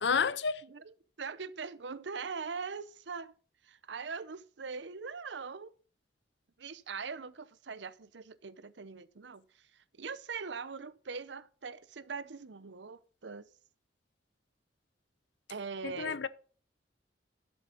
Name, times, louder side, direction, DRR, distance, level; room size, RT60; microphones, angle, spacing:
voice 1, 0.0-0.6 15.8-16.3, left 6 dB, 70° left, 0.7 m, -30 dB
voice 2, 0.6-3.3 3.6-5.7 6.6-9.4 10.0-13.5 15.5-16.2, right 5 dB, 70° right, 0.7 m, -42 dB
11.0 x 7.9 x 3.9 m
head